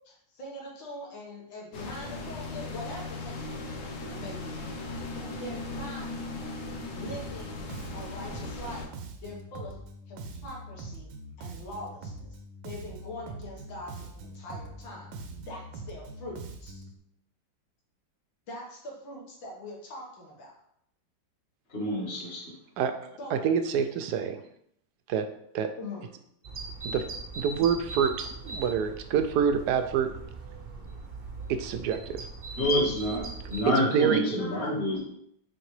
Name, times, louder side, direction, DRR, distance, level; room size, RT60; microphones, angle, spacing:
voice 1, 0.0-3.7 4.1-4.9 5.2-6.1 6.9-7.6 7.9-8.9 9.2-9.8 10.1-11.1 11.4-12.3 12.6-15.1 15.5-16.9 18.5-20.6 23.2-23.5 25.8-26.1 33.9-34.7, left 1 dB, 75° left, -3 dB, 2.2 m, -42 dB
sound 1, 1.7-8.9, left 2 dB, 55° left, 0.9 m, -38 dB
Bass guitar, 7.1-17.0, right 2 dB, 90° right, 1.5 m, -43 dB
voice 2, 21.7-22.4 32.6-35.0, equal, 35° left, -5 dB, 1.9 m, -28 dB
voice 3, 23.3-24.4 25.1-25.2 25.5-25.7 26.8-27.0 27.4-30.1 31.5-32.2 33.9-34.2, right 7 dB, 70° right, 8 dB, 1.0 m, -26 dB
sound 2, 26.4-33.6, right 3 dB, 45° right, 0.7 m, -40 dB
6.4 x 4.5 x 3.2 m, 0.72 s
omnidirectional pair, 2.1 m